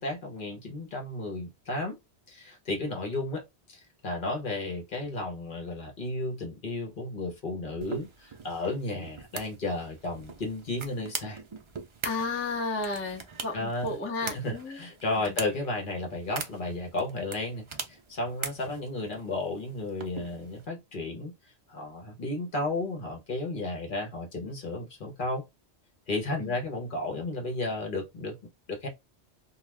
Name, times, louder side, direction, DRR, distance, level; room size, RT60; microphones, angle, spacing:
voice 1, 0.0-2.0 2.3-11.4 13.5-13.9 14.3-21.3 21.7-25.4 26.1-28.9, left 2 dB, 50° left, 0.9 m, -33 dB
sound 1, 7.8-20.7, right 5 dB, 50° right, 0.3 m, -42 dB
voice 2, 12.0-14.8 26.4-26.6, left 3 dB, 15° left, 0.5 m, -32 dB
2.3 x 2.2 x 3.2 m
omnidirectional pair, 1.2 m